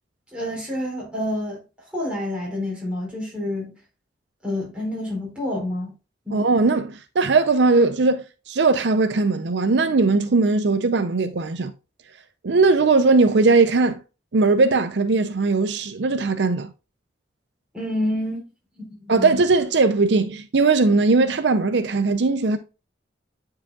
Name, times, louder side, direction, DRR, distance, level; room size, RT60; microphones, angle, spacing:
voice 1, 0.3-1.6 1.9-3.8 4.4-5.9 6.2-6.4 17.7-18.4 18.7-19.4, left 1 dB, 5° right, 4.0 m, -28 dB
voice 2, 6.3-11.7 12.4-14.0 14.3-16.7 19.1-22.6, right 3 dB, 75° right, 0.6 m, -19 dB
9.6 x 4.9 x 2.3 m
head